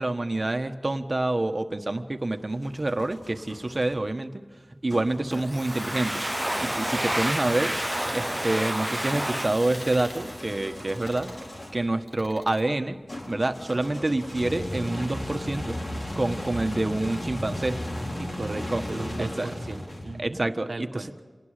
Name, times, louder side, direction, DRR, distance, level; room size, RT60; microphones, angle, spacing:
voice 1, 0.0-4.4 4.8-6.2 6.6-7.7 8.1-11.3 11.7-13.0 13.3-15.8 16.1-17.8 18.7-18.8 19.2-19.5 20.2-21.2, right 2 dB, 40° right, 7 dB, 1.4 m, -27 dB
sound 1, 2.2-4.0 4.9-11.9 13.1-20.4, left 1 dB, 55° left, 4.2 m, -37 dB
Domestic sounds home sounds, 5.3-10.9, right 1 dB, 10° right, 0.5 m, -30 dB
sound 2, 7.9-8.3 8.9-9.2 9.7-10.2 10.9-11.4 12.1-12.6, left 1 dB, 80° left, 4.0 m, -45 dB
voice 2, 18.2-20.4 20.7-21.1, right 2 dB, 70° right, 6 dB, 1.3 m, -36 dB
27.0 x 19.0 x 5.1 m, 1.4 s
wide cardioid pair, 45°, 0 cm